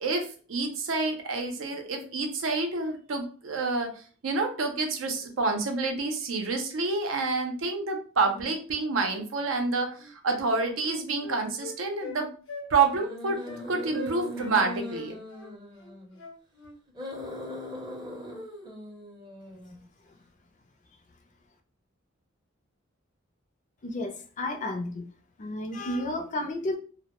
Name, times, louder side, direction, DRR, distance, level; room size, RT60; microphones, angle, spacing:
voice 1, 0.0-3.9 4.2-12.3 12.7-13.4 13.7-15.2, right 3 dB, 90° right, 0.6 m, -28 dB
sound 1, 8.3-8.5 9.1-9.2 12.9-16.2 16.9-19.9, left 1 dB, 20° right, 0.5 m, -40 dB
Wind instrument woodwind instrument, 10.0-10.1 10.4-12.2 12.5-12.7 12.9-13.1 13.4-13.6 13.9-14.6 14.9-16.8, left 1 dB, 85° left, 0.7 m, -42 dB
voice 2, 23.8-25.1 25.4-26.8, left 1 dB, 40° left, 0.4 m, -32 dB
2.1 x 2.0 x 2.9 m
head